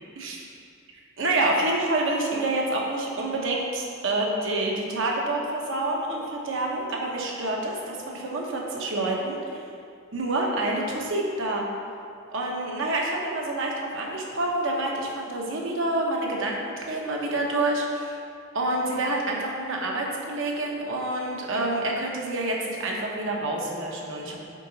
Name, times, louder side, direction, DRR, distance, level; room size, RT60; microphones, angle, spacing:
voice 1, 1.2-9.6 10.1-11.7 12.3-16.6 16.9-18.2 18.5-24.5, right 2 dB, 70° right, -1 dB, 1.1 m, -27 dB
8.8 x 3.9 x 4.1 m, 2.4 s
head